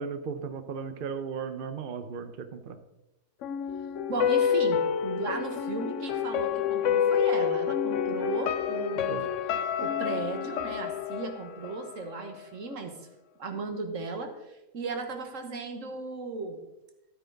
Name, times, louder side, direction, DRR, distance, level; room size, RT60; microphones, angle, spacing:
voice 1, 0.0-2.8 9.1-9.2, right 6 dB, 50° right, 9 dB, 0.7 m, -36 dB
sound 1, 3.4-12.4 12.7-12.8, left 8 dB, 65° left, 0.9 m, -28 dB
voice 2, 4.1-9.3 9.8-12.9 13.4-16.6, right 3 dB, 65° right, 5 dB, 1.6 m, -35 dB
12.5 x 8.9 x 3.9 m, 0.92 s
omnidirectional pair, 1.5 m